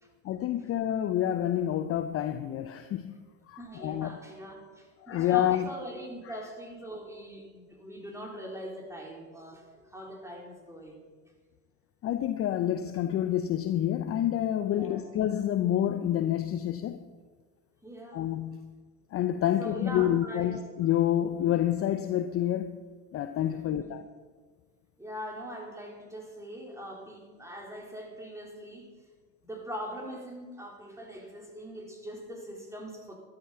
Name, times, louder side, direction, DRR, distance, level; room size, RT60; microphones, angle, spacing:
voice 1, 0.2-3.2 3.5-4.2 5.0-5.7 12.0-17.0 18.1-18.7 19.1-22.8 23.1-24.1, left 11 dB, 30° left, 0.7 m, -28 dB
voice 2, 3.6-11.0 14.6-15.0 17.8-18.3 19.6-20.6 23.7-23.9 25.0-28.9 29.4-33.1, equal, 5° right, 4.0 m, -42 dB
12.5 x 12.5 x 5.8 m
hypercardioid pair, 95°, 44 cm